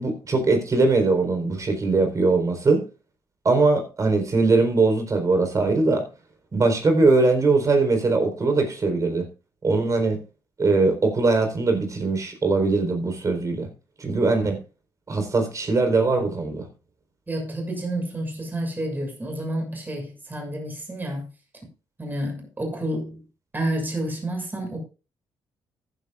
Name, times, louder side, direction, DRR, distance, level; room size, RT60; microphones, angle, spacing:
voice 1, 0.0-2.8 3.4-6.0 6.5-9.2 9.6-10.2 10.6-13.7 14.0-14.6 15.1-16.7, right 3 dB, 40° right, 4.3 m, -21 dB
voice 2, 17.3-21.3 22.0-23.2 23.5-24.8, right 1 dB, 20° right, 6.6 m, -29 dB
14.5 x 10.5 x 2.5 m
cardioid pair, 90°, 9 cm